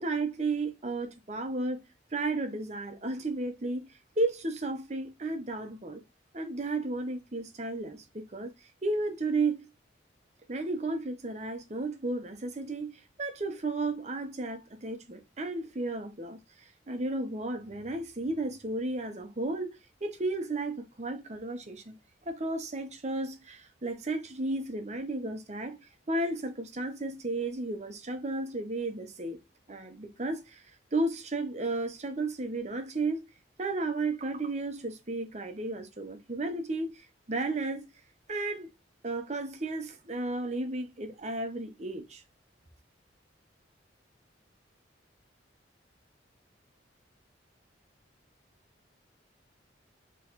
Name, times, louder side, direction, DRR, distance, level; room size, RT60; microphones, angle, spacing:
voice 1, 0.0-1.8 2.1-3.9 4.2-6.0 6.3-8.5 8.8-9.7 10.5-16.4 16.9-22.0 22.2-25.8 26.1-29.4 29.7-30.6 30.9-33.2 33.6-36.9 37.3-37.8 38.3-38.7 39.0-42.2, right 2 dB, 35° right, 0.8 m, -33 dB
4.0 x 3.1 x 4.2 m
head